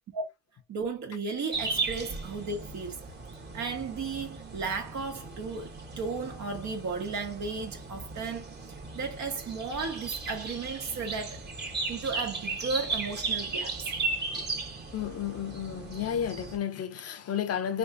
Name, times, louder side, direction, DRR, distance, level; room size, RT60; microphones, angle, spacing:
voice 1, 0.7-3.0 3.5-11.5 11.9-13.9, right 4 dB, 65° right, 1.5 m, -35 dB
sound 1, 1.5-16.6, right 3 dB, 35° right, 1.3 m, -36 dB
voice 2, 14.9-17.8, left 8 dB, 55° left, 0.7 m, -32 dB
3.3 x 3.1 x 2.7 m
cardioid pair, 90°, 30 cm